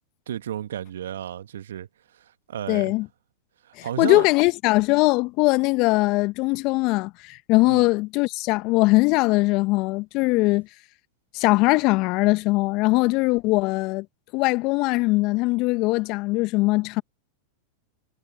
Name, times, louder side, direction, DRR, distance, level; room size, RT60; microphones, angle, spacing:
voice 1, 0.3-2.9 3.6-4.3 7.7-7.9, right 10 dB, 70° right, 1.7 m, -33 dB
voice 2, 2.7-3.1 3.8-10.7 11.3-14.0 14.3-17.0, left 23 dB, 50° left, 1.3 m, -21 dB
figure-of-eight pair, 95°, 0 cm